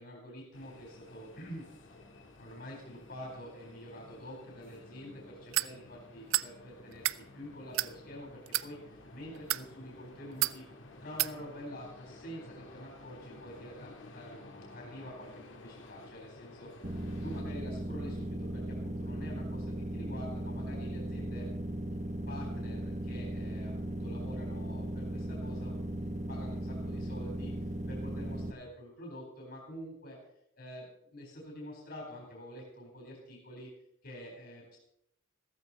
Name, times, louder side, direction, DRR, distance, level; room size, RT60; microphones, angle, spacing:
voice 1, 0.0-1.8 2.4-7.1 7.3-10.6 11.0-16.8 17.2-21.5 22.3-27.6 27.9-30.2 30.6-33.7 34.0-34.8, equal, 55° left, -1 dB, 4.0 m, -47 dB
sound 1, 0.5-17.4, left 2 dB, 70° left, 2.1 m, -53 dB
sound 2, 5.5-5.7 6.3-6.5 6.9-7.2 7.7-7.9 8.5-8.7 9.4-9.7 10.4-10.6 11.2-11.3, right 16 dB, 85° right, 0.4 m, -30 dB
sound 3, 16.8-28.5, right 1 dB, 35° right, 1.0 m, -37 dB
15.5 x 14.0 x 4.2 m, 0.78 s
head